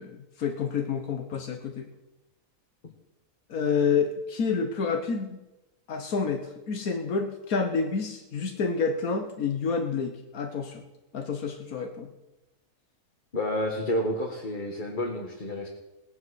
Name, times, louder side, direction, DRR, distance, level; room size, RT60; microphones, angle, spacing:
voice 1, 0.0-1.9 3.5-5.4 5.9-10.8 11.1-12.1, left 5 dB, 85° left, 4 dB, 1.6 m, -29 dB
voice 2, 13.3-15.7, left 1 dB, 35° left, -1 dB, 1.8 m, -30 dB
18.0 x 9.7 x 6.3 m, 1.0 s
omnidirectional pair, 1.5 m